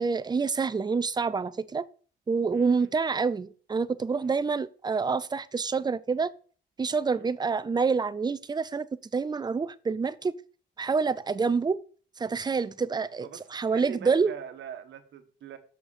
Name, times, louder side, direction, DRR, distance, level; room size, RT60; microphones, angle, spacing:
voice 1, 0.0-1.8 2.3-6.3 6.8-8.9 9.1-10.3 10.8-11.8 12.2-14.3, right 5 dB, 20° right, 0.5 m, -27 dB
voice 2, 2.5-2.9 4.2-4.3 7.0-7.3 13.2-15.6, right 8 dB, 70° right, 1.2 m, -43 dB
6.6 x 6.2 x 4.4 m
cardioid pair, 90°, 20 cm